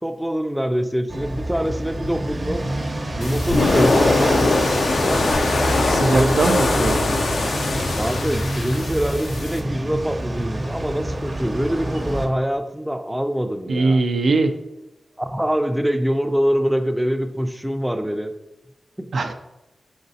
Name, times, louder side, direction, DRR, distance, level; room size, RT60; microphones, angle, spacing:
voice 1, 0.0-2.6 3.2-4.7 5.0-5.3 6.1-6.7 8.0-14.0 15.2-18.3 19.0-19.1, equal, 5° right, 7 dB, 0.3 m, -24 dB
sound 1, 1.1-12.3, right 1 dB, 40° right, 0.6 m, -27 dB
sound 2, 3.2-9.6, left 2 dB, 85° left, 0.5 m, -21 dB
voice 2, 5.8-7.0 13.7-14.5 19.1-19.3, right 3 dB, 85° right, 7 dB, 0.3 m, -20 dB
5.0 x 3.9 x 2.7 m, 0.94 s
wide cardioid pair, 75°, 0 cm